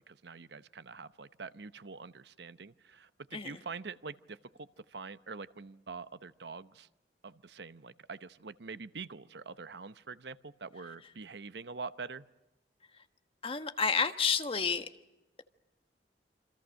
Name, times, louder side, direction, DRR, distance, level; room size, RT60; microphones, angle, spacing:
voice 1, 0.1-6.9 7.2-12.2, right 4 dB, 70° right, 14 dB, 0.9 m, -45 dB
voice 2, 13.4-14.9, left 5 dB, 30° left, 8 dB, 1.3 m, -30 dB
28.0 x 26.0 x 6.5 m, 0.98 s
head